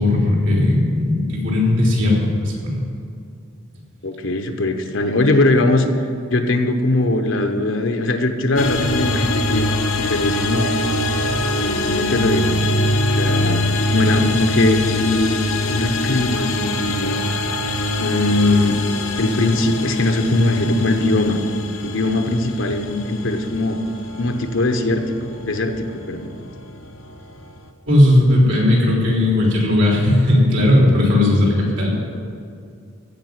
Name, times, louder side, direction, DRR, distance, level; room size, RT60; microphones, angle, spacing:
voice 1, 0.0-2.8 27.9-31.9, left 1 dB, 65° right, -3 dB, 3.4 m, -16 dB
voice 2, 4.0-5.9 6.3-9.7 9.9-10.7 11.6-12.6 13.1-13.6 13.9-15.4 15.7-17.2 18.0-18.8 19.2-21.4 21.8-23.8 24.2-26.3, left 2 dB, 65° left, 5 dB, 1.0 m, -20 dB
sound 1, 8.6-27.7, left 1 dB, 85° left, 1.1 m, -23 dB
15.0 x 5.3 x 9.4 m, 2.4 s
head